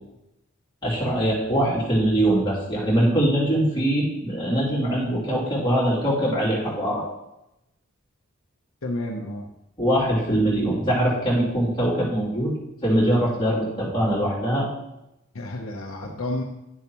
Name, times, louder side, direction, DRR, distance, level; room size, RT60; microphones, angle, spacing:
voice 1, 0.8-7.0 9.8-12.5 12.8-14.7, right 1 dB, 20° left, -9 dB, 2.8 m, -22 dB
voice 2, 8.8-9.4 15.3-16.4, left 1 dB, 70° left, 0 dB, 0.9 m, -31 dB
11.0 x 7.1 x 3.0 m, 0.91 s
head